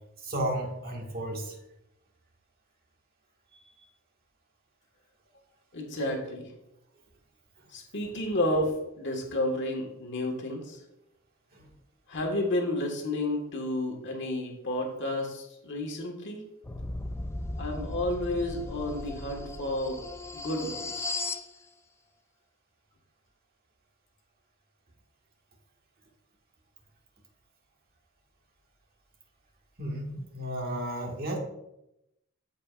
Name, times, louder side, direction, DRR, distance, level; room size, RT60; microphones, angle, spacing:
voice 1, 0.2-1.6 11.5-11.6 29.8-31.4, right 1 dB, 45° right, 0 dB, 1.7 m, -33 dB
voice 2, 5.7-6.5 7.7-8.7 9.0-10.8 12.1-16.4 17.6-20.0 20.3-21.1, left 1 dB, 60° left, 1 dB, 1.5 m, -31 dB
sound 1, 16.6-21.5, left 2 dB, 10° left, 0.4 m, -36 dB
13.5 x 5.3 x 2.5 m, 0.87 s
head